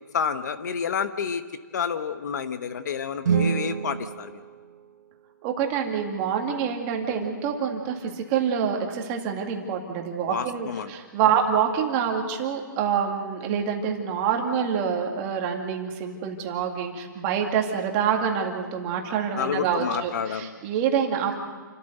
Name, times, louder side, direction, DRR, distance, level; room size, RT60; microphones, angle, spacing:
voice 1, 0.1-1.4 1.7-4.4 10.2-10.9 19.4-20.5, left 7 dB, 55° left, 10 dB, 1.1 m, -29 dB
sound 1, 3.2-5.4, right 7 dB, 55° right, 1.6 m, -28 dB
voice 2, 5.4-21.3, right 7 dB, 25° right, 2 dB, 2.2 m, -26 dB
28.5 x 13.5 x 7.9 m, 1.4 s
hypercardioid pair, 160°, 11 cm